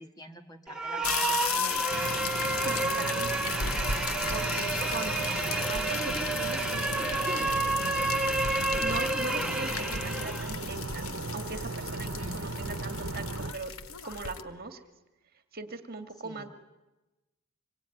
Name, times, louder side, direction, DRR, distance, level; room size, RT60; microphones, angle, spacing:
voice 1, 0.0-1.9 12.2-12.7 16.2-16.5, right 1 dB, 20° left, 5 dB, 1.9 m, -46 dB
sound 1, 0.7-10.5, right 2 dB, 5° right, 1.2 m, -30 dB
sound 2, 1.0-14.4, left 6 dB, 80° left, 1.2 m, -36 dB
sound 3, 1.9-13.5, right 3 dB, 70° right, 1.1 m, -37 dB
voice 2, 2.5-3.9 4.3-7.5 8.8-11.1 11.3-13.2 13.5-13.7 14.0-14.8 15.5-16.5, right 3 dB, 45° right, 7 dB, 2.1 m, -40 dB
26.0 x 22.5 x 9.3 m, 1.1 s
head